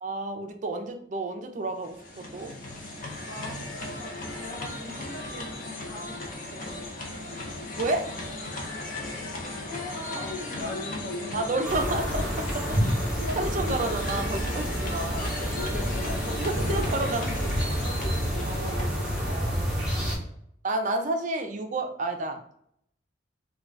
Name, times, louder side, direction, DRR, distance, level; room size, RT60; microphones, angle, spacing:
voice 1, 0.0-2.5 7.8-8.1 11.3-13.0 13.3-15.3 16.3-17.3 18.4-18.9 19.2-19.9 20.6-22.5, right 2 dB, 40° right, 5 dB, 0.4 m, -31 dB
sound 1, 1.7-19.7, left 2 dB, 45° left, 0.5 m, -36 dB
voice 2, 3.3-3.6 4.0-7.0 7.3-7.5 9.3-10.8 13.2-13.4 14.4-18.5 19.1-19.6, left 1 dB, 30° left, -6 dB, 1.0 m, -43 dB
sound 2, 11.6-20.2, equal, 5° right, 0.8 m, -29 dB
2.2 x 2.2 x 3.7 m, 0.70 s
head